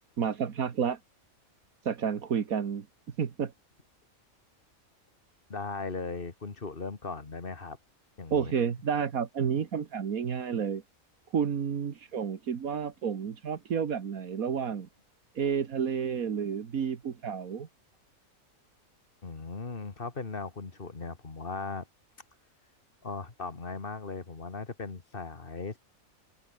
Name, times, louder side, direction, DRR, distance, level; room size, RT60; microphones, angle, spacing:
voice 1, 0.2-1.0 1.9-2.9 3.2-3.5 8.3-10.8 11.3-14.9 15.4-17.7, right 7 dB, 80° right, 1.9 m, -30 dB
voice 2, 5.5-7.8 8.2-8.5 19.2-21.9 23.0-25.8, left 4 dB, 40° left, 2.1 m, -38 dB
omnidirectional pair, 1.5 m